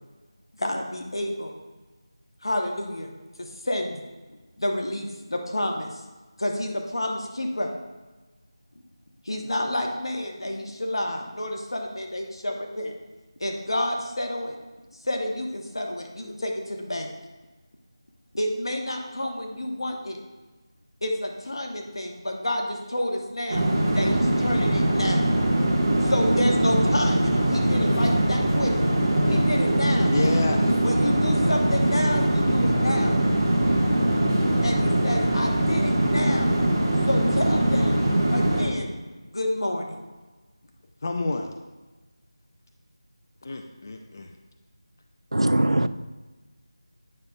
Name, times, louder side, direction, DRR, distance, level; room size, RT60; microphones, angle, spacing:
voice 1, 0.6-1.5 2.4-3.1 3.4-4.0 4.6-5.9 6.4-7.7 9.2-12.9 13.4-14.6 15.0-17.1 18.3-20.2 21.0-23.7 23.9-25.3 26.0-28.7 29.3-30.4 30.8-33.1 34.6-36.5 37.1-38.0 38.3-40.0, left 1 dB, 65° left, 2 dB, 1.0 m, -29 dB
sound 1, 23.5-38.6, right 1 dB, 35° right, 1.5 m, -22 dB
voice 2, 29.9-30.6 41.0-41.5 43.4-44.3, left 2 dB, 35° left, 5 dB, 0.5 m, -28 dB
voice 3, 45.3-45.9, right 1 dB, 80° right, 13 dB, 0.4 m, -21 dB
9.3 x 6.3 x 2.4 m, 1.2 s
figure-of-eight pair, 165°, 3 cm